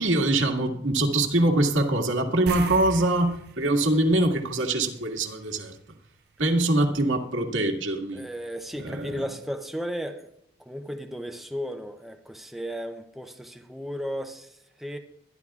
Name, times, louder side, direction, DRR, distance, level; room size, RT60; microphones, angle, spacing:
voice 1, 0.0-5.8 6.4-8.2 8.8-9.2, right 2 dB, 85° right, 2.0 m, -23 dB
sound 1, 2.5-5.2 5.5-5.7 8.6-8.7 9.0-9.1, right 6 dB, 50° right, 0.5 m, -39 dB
voice 2, 8.1-10.3 10.6-15.0, equal, ahead, 0.6 m, -35 dB
22.5 x 11.5 x 2.4 m
head